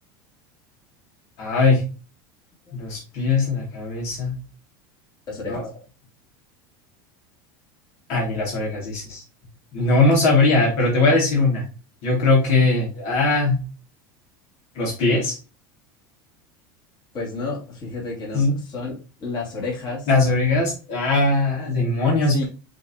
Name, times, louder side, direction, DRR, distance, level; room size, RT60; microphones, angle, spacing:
voice 1, 1.4-1.8 2.7-4.3 5.5-5.6 8.1-9.2 9.7-11.7 12.0-13.6 14.8-15.4 18.3-18.5 20.1-22.4, left 3 dB, 55° left, -2 dB, 1.9 m, -20 dB
voice 2, 5.3-5.6 17.1-20.1 22.3-22.4, left 3 dB, 35° left, -3 dB, 2.3 m, -31 dB
6.2 x 2.9 x 2.7 m, 0.34 s
supercardioid pair, 115°, 12 cm